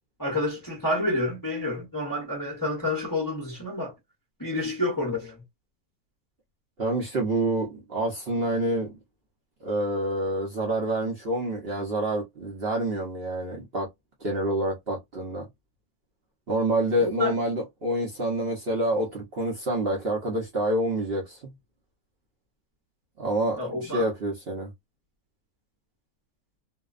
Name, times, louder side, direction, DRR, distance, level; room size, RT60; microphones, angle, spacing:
voice 1, 0.2-3.9 4.4-5.4 17.2-17.3 23.6-24.1, left 2 dB, 15° left, 0.7 m, -29 dB
voice 2, 6.8-8.9 9.6-13.9 14.2-15.5 16.5-21.5 23.2-24.7, right 1 dB, 50° right, 0.8 m, -27 dB
2.7 x 2.1 x 2.4 m
omnidirectional pair, 1.7 m